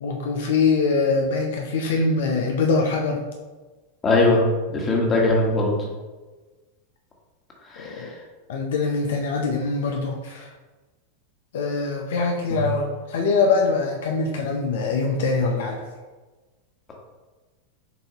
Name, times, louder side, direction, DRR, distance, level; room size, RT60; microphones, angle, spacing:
voice 1, 0.0-3.2 7.8-8.1 8.5-10.5 11.5-15.8, left 4 dB, 75° left, 1 dB, 0.5 m, -23 dB
voice 2, 4.0-4.4 4.7-5.7 7.7-8.1 12.5-12.6, left 2 dB, 25° left, -2 dB, 1.3 m, -20 dB
6.8 x 2.7 x 2.9 m, 1.2 s
hypercardioid pair, 105°, 0 cm